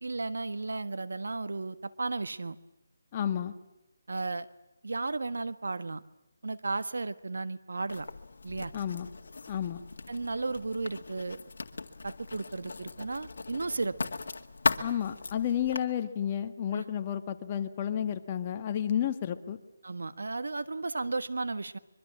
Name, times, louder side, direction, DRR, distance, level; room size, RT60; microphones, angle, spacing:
voice 1, 0.0-2.6 4.1-4.5 4.8-6.0 6.4-8.1 8.4-8.7 10.1-11.4 12.0-14.0 16.7-16.8 19.8-21.8, right 3 dB, 85° right, 13 dB, 1.4 m, -34 dB
voice 2, 3.1-3.5 8.7-9.1 9.5-9.8 14.8-19.6, left 9 dB, 25° left, 7 dB, 1.4 m, -31 dB
Writing, 7.9-15.8, left 3 dB, 70° left, 2.0 m, -37 dB
25.0 x 23.5 x 7.5 m, 0.93 s
hypercardioid pair, 170°, 0 cm